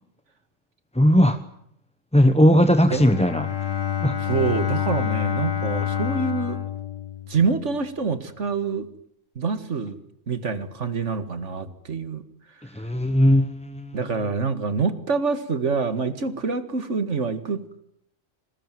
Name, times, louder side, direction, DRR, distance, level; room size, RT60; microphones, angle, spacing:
voice 1, 0.9-1.4 2.1-3.5 4.0-4.2 12.6-14.0, equal, 5° left, 10 dB, 0.9 m, -18 dB
Bowed string instrument, 2.8-7.7, left 9 dB, 80° left, 2.2 m, -28 dB
voice 2, 4.2-6.6 7.3-8.9 9.4-10.0 10.3-12.2 13.9-17.6, right 4 dB, 70° right, 11 dB, 2.2 m, -26 dB
26.5 x 20.5 x 9.3 m, 0.72 s
omnidirectional pair, 1.3 m